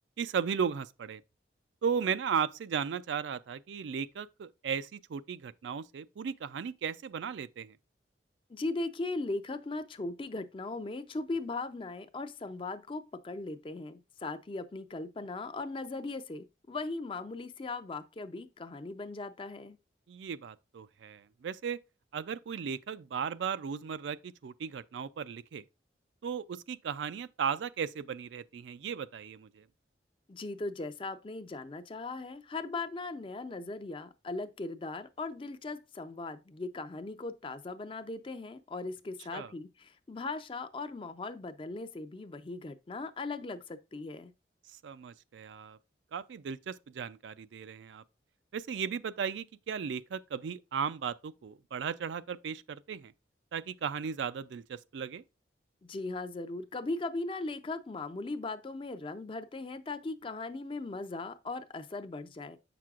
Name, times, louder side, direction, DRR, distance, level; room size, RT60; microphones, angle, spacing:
voice 1, 0.2-1.2 1.8-7.8 20.1-21.8 22.1-25.6 26.2-29.7 39.3-39.5 44.8-45.8 46.1-48.0 48.5-53.1 53.5-55.2, right 7 dB, 80° right, 0.4 m, -36 dB
voice 2, 8.5-19.8 30.3-44.3 55.8-62.6, left 3 dB, 30° left, 0.4 m, -38 dB
7.4 x 6.0 x 2.4 m
head